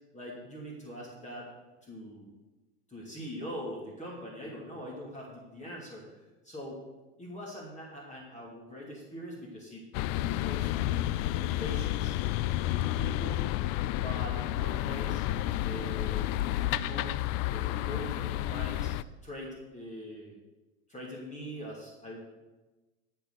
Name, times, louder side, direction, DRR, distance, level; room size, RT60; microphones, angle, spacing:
voice 1, 0.1-1.5 1.8-2.3 2.9-6.1 6.4-6.8 7.2-9.8 10.2-12.1 12.7-13.4 13.9-15.2 15.6-18.9 19.2-20.4 20.9-22.2, equal, 20° left, -3 dB, 2.6 m, -42 dB
sound 1, 9.9-19.0, left 14 dB, 55° left, 0.5 m, -31 dB
13.0 x 4.6 x 8.0 m, 1.2 s
hypercardioid pair, 95°, 34 cm